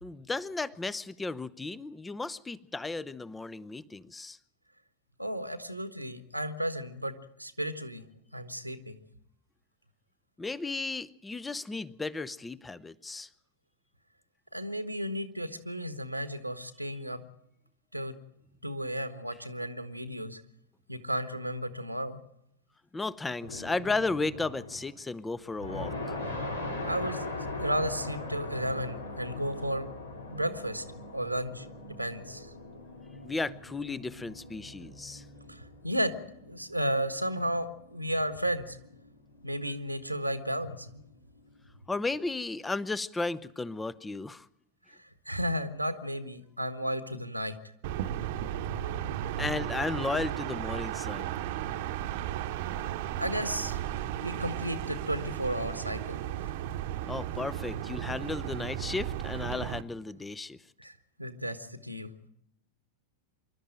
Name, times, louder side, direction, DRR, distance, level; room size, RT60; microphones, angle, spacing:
voice 1, 0.0-4.4 10.4-13.3 22.9-26.2 33.2-35.2 41.9-44.5 49.4-51.4 52.5-52.6 57.1-60.6, left 3 dB, 10° left, 21 dB, 0.7 m, -34 dB
voice 2, 5.2-8.0 8.3-9.0 14.5-17.2 17.9-18.1 18.6-20.4 20.9-22.2 26.8-27.2 27.6-29.9 30.3-30.8 31.1-32.5 35.5-36.1 36.5-38.8 39.4-41.0 44.9-47.5 53.2-53.8 54.2-56.5 60.8-62.1, equal, 90° right, 10 dB, 1.4 m, -33 dB
sound 1, 23.4-25.0 25.4-41.8, left 2 dB, 75° left, 3.6 m, -41 dB
sound 2, 47.8-59.8, right 11 dB, 50° right, 1.0 m, -35 dB
26.0 x 12.5 x 9.0 m, 0.80 s
figure-of-eight pair, 90°, 0 cm